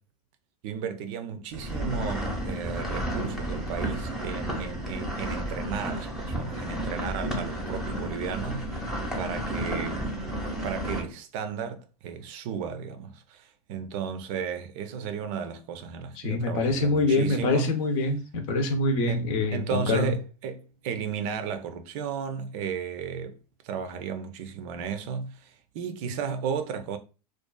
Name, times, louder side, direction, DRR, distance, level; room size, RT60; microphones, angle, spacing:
voice 1, 0.6-8.7 9.2-17.8 19.0-23.4 23.6-27.0, right 6 dB, 55° right, 0.5 m, -34 dB
sound 1, 1.5-11.0, right 1 dB, ahead, 0.7 m, -32 dB
voice 2, 16.2-20.1, left 2 dB, 60° left, 0.7 m, -25 dB
2.5 x 2.3 x 2.2 m
hypercardioid pair, 105°, 20 cm